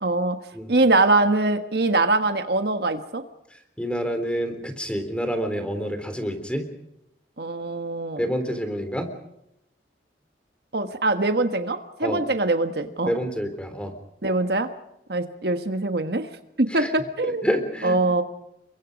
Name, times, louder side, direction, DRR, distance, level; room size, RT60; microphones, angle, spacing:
voice 1, 0.0-0.4 0.7-3.2 7.4-8.2 10.7-13.1 14.2-14.7 15.1-16.3 16.6-17.5 17.8-18.2, right 2 dB, 60° right, 8 dB, 1.4 m, -23 dB
voice 2, 3.8-6.6 8.2-9.1 12.0-12.2 13.1-13.9 16.7-16.9 17.2-18.0, equal, 5° left, 8 dB, 3.5 m, -28 dB
29.5 x 23.5 x 5.3 m, 0.82 s
head